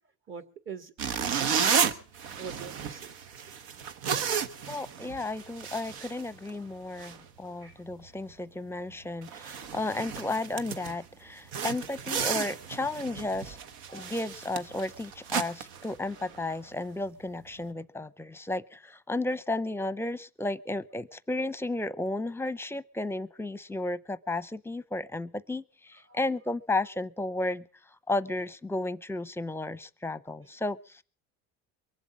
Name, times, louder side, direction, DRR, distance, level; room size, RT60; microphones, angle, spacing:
voice 1, 0.3-0.9 1.3-3.2 6.6-6.9 7.4-7.8 13.9-14.1 26.1-26.2, right 6 dB, 45° right, 2.0 m, -45 dB
sound 1, 1.0-6.7 7.0-7.2 7.7-7.9 8.3-8.4 8.9-9.0 9.2-11.0 11.5-16.5, right 7 dB, 90° right, 1.2 m, -33 dB
voice 2, 4.7-13.6 13.9-27.7 28.1-31.0, left 2 dB, 10° left, 0.7 m, -33 dB
23.0 x 7.9 x 7.4 m
cardioid pair, 115°, 29 cm